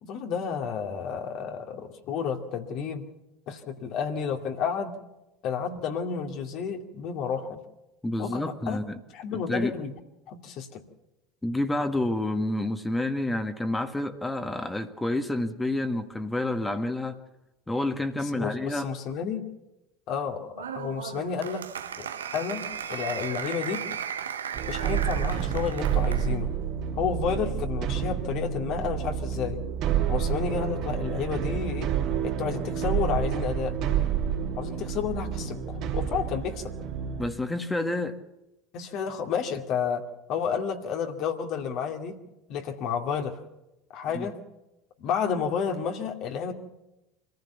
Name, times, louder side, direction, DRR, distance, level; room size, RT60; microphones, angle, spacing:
voice 1, 0.0-3.1 3.5-5.0 5.4-7.6 8.2-8.8 9.1-10.0 10.3-10.8 18.2-19.4 20.1-22.1 22.3-23.8 24.7-26.5 27.0-29.6 30.1-31.9 32.2-33.8 34.6-36.7 38.7-40.0 40.3-42.2 42.5-43.3 43.9-44.4 45.0-46.5, left 7 dB, 55° left, 4 dB, 2.5 m, -31 dB
voice 2, 8.0-9.0 9.5-9.7 11.4-17.2 17.7-18.9 37.2-38.2 44.1-44.3, left 1 dB, 10° left, 7 dB, 1.7 m, -29 dB
Applause, 20.6-26.4, right 8 dB, 85° right, 0.9 m, -36 dB
sound 1, 24.5-37.3, right 8 dB, 55° right, 3.0 m, -29 dB
25.0 x 15.0 x 7.1 m, 0.95 s
hypercardioid pair, 75°, 0 cm